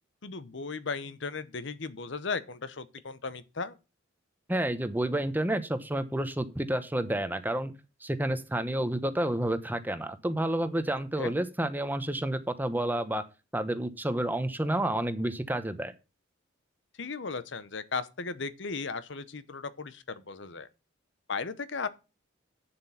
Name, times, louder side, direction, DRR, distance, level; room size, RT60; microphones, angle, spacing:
voice 1, 0.2-3.8 11.2-11.3 17.0-20.7 21.3-21.9, left 4 dB, 65° left, 0.9 m, -36 dB
voice 2, 4.5-7.7 8.0-13.2 13.5-15.9, right 1 dB, 10° right, 0.9 m, -30 dB
8.9 x 7.5 x 5.7 m
head